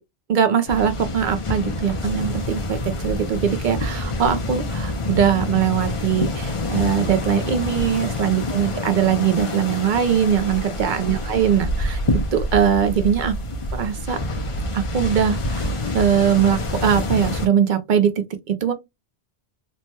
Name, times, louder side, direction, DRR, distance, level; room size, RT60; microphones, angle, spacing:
voice 1, 0.3-12.0 12.3-13.4 13.7-14.2 14.7-18.7, right 8 dB, 60° right, 0.6 m, -21 dB
sound 1, 0.7-17.5, left 2 dB, 40° left, 0.5 m, -27 dB
3.1 x 2.1 x 2.8 m
omnidirectional pair, 1.0 m